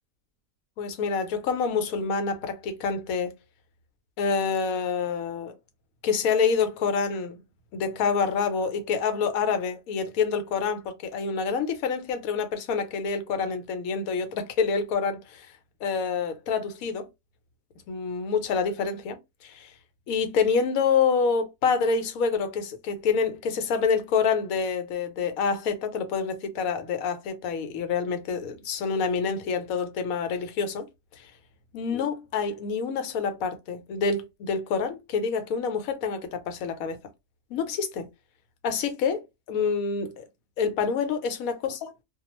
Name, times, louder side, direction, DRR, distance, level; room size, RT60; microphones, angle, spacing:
voice 1, 0.8-3.3 4.2-5.5 6.0-7.4 7.7-15.5 15.8-17.1 17.9-19.7 20.1-30.8 31.2-31.3 31.7-37.0 37.5-38.1 38.6-40.2 40.6-41.8, left 5 dB, 80° left, 1.1 m, -27 dB
2.4 x 2.3 x 2.9 m
omnidirectional pair, 1.5 m